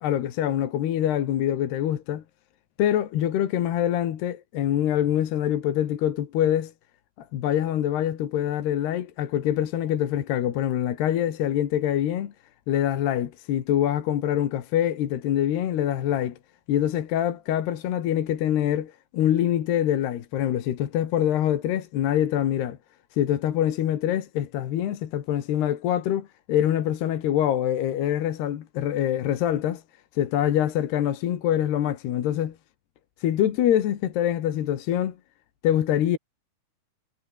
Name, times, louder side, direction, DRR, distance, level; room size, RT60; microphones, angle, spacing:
voice 1, 0.0-2.2 2.8-6.7 7.2-12.3 12.7-16.4 16.7-22.8 23.1-29.8 30.1-32.6 33.2-35.2 35.6-36.2, left 11 dB, 80° left, 3.9 m, -25 dB
omnidirectional pair, 4.7 m